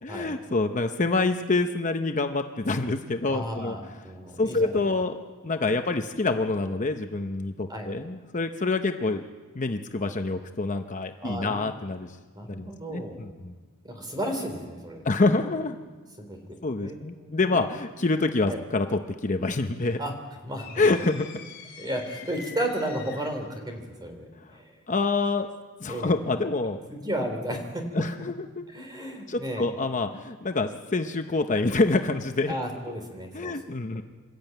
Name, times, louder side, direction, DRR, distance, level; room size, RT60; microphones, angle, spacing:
voice 1, 0.0-3.8 4.4-9.2 9.5-12.1 12.5-13.5 15.0-15.8 16.6-20.0 20.8-21.3 24.9-25.5 25.8-26.8 27.9-28.6 29.3-32.5 33.3-34.0, left 3 dB, 35° left, 6 dB, 0.8 m, -26 dB
voice 2, 3.3-4.7 7.7-7.9 11.2-11.7 12.3-13.2 13.8-15.0 16.2-16.4 16.8-17.7 18.5-18.6 20.0-20.1 20.4-20.8 21.8-24.6 25.9-26.1 26.9-28.0 28.7-29.6 32.5-33.5, right 1 dB, 20° right, 4 dB, 3.3 m, -33 dB
sound 1, 20.6-23.5, left 5 dB, 50° left, 3.8 m, -44 dB
27.0 x 12.5 x 9.1 m, 1.4 s
head